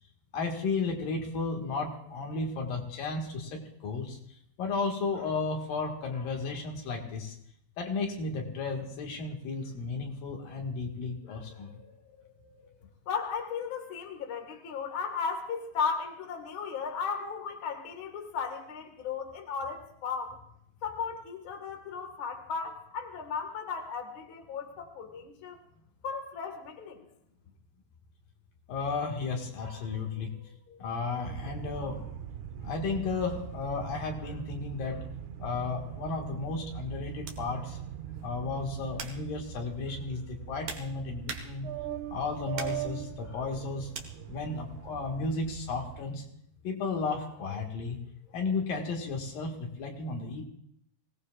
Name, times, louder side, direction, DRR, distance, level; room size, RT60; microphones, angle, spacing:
voice 1, 0.3-4.2 4.6-7.3 7.8-12.6 28.7-30.4 30.7-32.2 32.6-35.1 35.4-37.8 38.2-41.7 42.1-46.2 46.6-48.0 48.3-50.4, left 4 dB, 65° left, 1 dB, 3.3 m, -34 dB
voice 2, 13.1-20.4 20.8-25.6 26.0-27.0, left 5 dB, 45° left, 4 dB, 1.8 m, -35 dB
sound 1, 31.2-46.0, right 10 dB, 80° right, 1.7 m, -41 dB
sound 2, 35.9-36.1 37.2-37.5 38.1-38.4 38.9-39.3 40.2-41.9 42.5-42.9 43.9-44.1, right 5 dB, 55° right, 1.7 m, -42 dB
25.0 x 18.0 x 2.4 m, 0.73 s
omnidirectional pair, 4.5 m